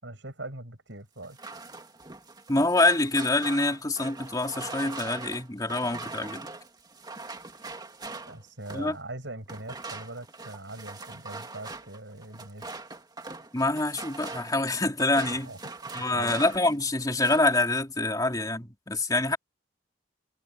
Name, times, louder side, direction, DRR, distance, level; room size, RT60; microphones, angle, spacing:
voice 1, 0.0-1.4 8.3-12.7 15.4-15.6 16.1-16.4, right 2 dB, 90° right, 6.2 m, -41 dB
sound 1, 1.2-8.9 9.5-16.7 17.0-17.6, right 3 dB, 25° right, 2.3 m, -42 dB
voice 2, 2.5-6.5 8.7-9.0 13.5-15.5 15.9-19.4, left 2 dB, 20° left, 2.9 m, -26 dB
head